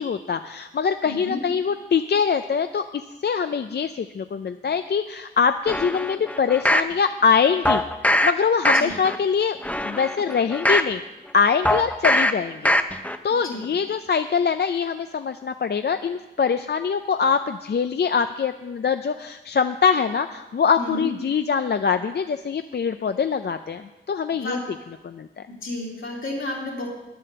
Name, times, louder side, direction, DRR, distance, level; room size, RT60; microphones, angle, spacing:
voice 1, 0.0-7.8 8.2-9.6 9.8-11.0 11.3-12.7 13.2-24.6 25.0-25.4, left 6 dB, 55° left, 9 dB, 0.4 m, -23 dB
voice 2, 1.0-1.4 8.7-9.0 13.4-13.7 20.8-21.1 24.3-24.6 25.5-26.9, left 2 dB, 75° left, -3 dB, 3.0 m, -31 dB
sound 1, 5.7-6.9 7.7-8.3 8.6-9.2 9.6-10.9 11.7-12.3 12.7-13.2 13.6-13.7, left 1 dB, 5° left, 0.6 m, -21 dB
10.0 x 7.7 x 6.7 m, 1.1 s
wide cardioid pair, 65°, 21 cm